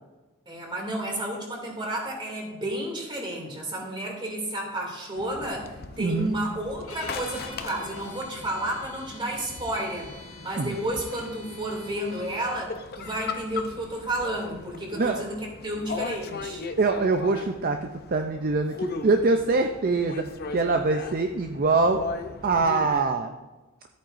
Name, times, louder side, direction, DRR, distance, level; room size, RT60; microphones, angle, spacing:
voice 1, 0.5-10.1 10.4-16.6, right 1 dB, 20° right, -1 dB, 2.6 m, -31 dB
sound 1, 5.1-23.0, left 4 dB, 45° left, 0.7 m, -39 dB
voice 2, 6.0-6.4 10.6-10.7 15.0-15.2 16.8-20.2 20.5-22.0 22.4-23.4, right 3 dB, 40° right, 5 dB, 0.5 m, -24 dB
sound 2, 6.8-12.6, left 3 dB, 85° left, 3.1 m, -46 dB
13.5 x 8.8 x 2.6 m, 1.1 s
head